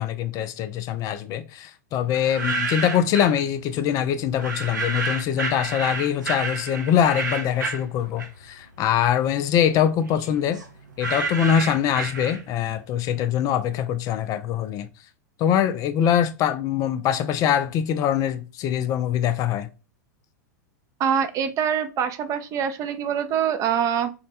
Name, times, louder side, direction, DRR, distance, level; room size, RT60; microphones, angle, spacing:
voice 1, 0.0-10.6 11.0-14.9 15.4-19.7, left 9 dB, 35° left, 0.3 m, -23 dB
sound 1, 2.1-3.4 4.4-8.6 9.0-12.7, right 3 dB, 85° right, 0.8 m, -30 dB
voice 2, 21.0-24.1, right 8 dB, 35° right, 0.5 m, -24 dB
4.1 x 2.1 x 2.8 m
hypercardioid pair, 95°, 10 cm